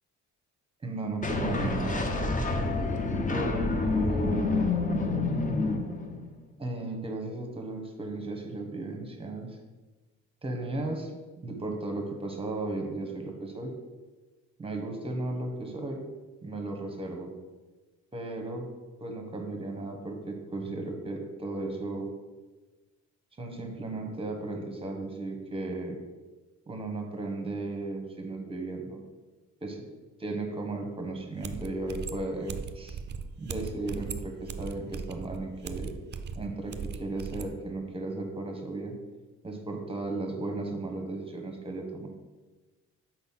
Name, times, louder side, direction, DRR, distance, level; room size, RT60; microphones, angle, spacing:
voice 1, 0.8-2.1 3.3-4.8 6.6-9.5 10.4-13.7 14.6-16.0 16.4-17.3 18.1-18.7 19.0-22.1 23.4-26.0 26.7-29.0 29.6-29.8 30.2-33.0 33.4-35.9 36.3-39.0 39.4-42.1, right 2 dB, 20° right, 3 dB, 1.1 m, -35 dB
sound 1, 1.2-6.4, left 3 dB, 25° left, 0.7 m, -28 dB
sound 2, 31.4-37.5, right 5 dB, 35° right, 0.4 m, -38 dB
4.5 x 4.0 x 5.6 m, 1.2 s
cardioid pair, 90°, 30 cm